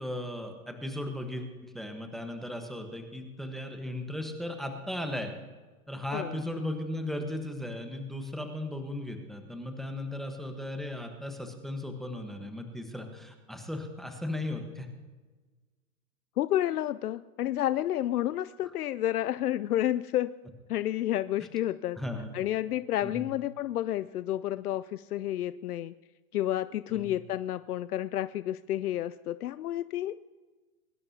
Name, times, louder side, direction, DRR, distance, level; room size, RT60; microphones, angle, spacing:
voice 1, 0.0-5.3 5.9-14.9 22.0-22.3 23.0-23.3 26.9-27.1, left 1 dB, ahead, 5 dB, 1.2 m, -36 dB
voice 2, 16.4-20.3 20.7-22.0 22.3-25.9 26.3-30.1, left 13 dB, 80° left, 14 dB, 0.6 m, -30 dB
23.0 x 12.0 x 2.8 m, 1.3 s
hypercardioid pair, 125°, 45 cm